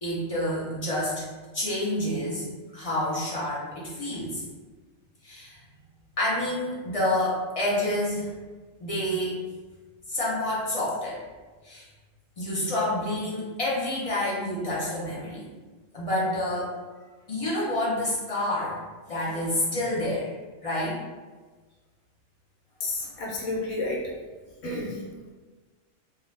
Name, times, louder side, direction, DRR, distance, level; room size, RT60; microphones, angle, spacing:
voice 1, 0.0-1.2 1.5-2.5 2.7-4.4 5.2-5.6 6.2-8.3 8.8-9.4 10.1-11.2 11.6-11.8 12.4-15.4 15.9-16.7 17.3-18.8 19.1-20.3 20.6-21.0 23.0-23.2 24.7-24.8, left 1 dB, 45° left, -7 dB, 0.4 m, -28 dB
voice 2, 22.8-24.0 24.6-25.0, left 2 dB, 75° left, -3 dB, 1.0 m, -30 dB
2.3 x 2.1 x 3.1 m, 1.3 s
omnidirectional pair, 1.3 m